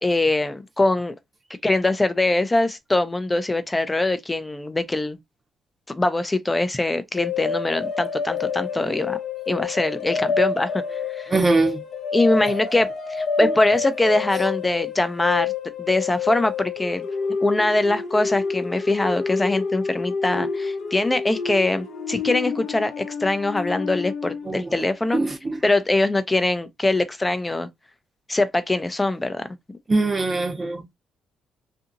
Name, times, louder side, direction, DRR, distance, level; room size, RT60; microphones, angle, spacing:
voice 1, 0.0-1.2 1.6-5.2 5.9-9.2 9.5-10.8 11.1-11.3 12.1-15.5 15.8-17.1 17.4-25.2 25.6-27.7 28.3-29.5, left 2 dB, 15° left, 0.5 m, -22 dB
sound 1, 7.2-24.6, left 5 dB, 60° left, 0.7 m, -28 dB
voice 2, 11.3-11.8 24.5-24.7 25.1-25.6 29.9-30.8, right 3 dB, 30° right, 0.7 m, -22 dB
2.7 x 2.6 x 2.5 m
cardioid pair, 90°, 0 cm